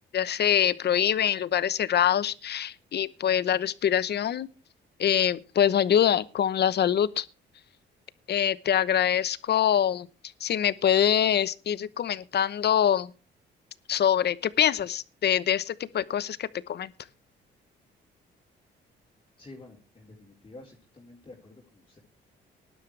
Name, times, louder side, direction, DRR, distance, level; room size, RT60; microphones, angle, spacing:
voice 1, 0.1-4.5 5.0-7.3 8.3-10.1 10.4-13.1 13.9-16.9, left 9 dB, 55° left, 0.9 m, -24 dB
voice 2, 19.4-22.0, left 2 dB, 25° left, 4.1 m, -49 dB
18.5 x 11.5 x 3.3 m
cardioid pair, 90°, 20 cm